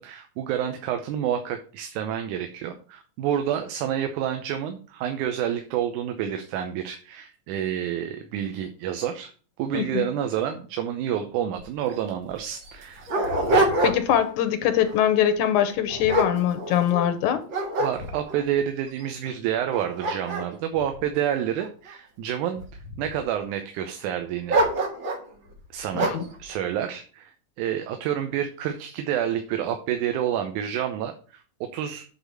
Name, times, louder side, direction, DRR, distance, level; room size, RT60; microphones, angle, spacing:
voice 1, 0.0-9.3 9.6-13.0 17.8-22.6 23.0-24.6 25.7-26.1 26.4-27.3 27.6-32.0, right 10 dB, 90° right, 2.3 m, -29 dB
voice 2, 9.7-10.1 13.8-17.4 25.9-26.3, left 10 dB, 85° left, 2.3 m, -23 dB
Dog, 11.6-11.7 11.9-12.0 12.6-14.3 14.7-15.0 15.6-17.1 17.5-18.4 19.0-19.1 19.6-21.9 22.6-23.2 24.5-25.3 26.0-26.3, right 1 dB, 45° right, 2.2 m, -26 dB
8.5 x 4.0 x 6.2 m
omnidirectional pair, 3.4 m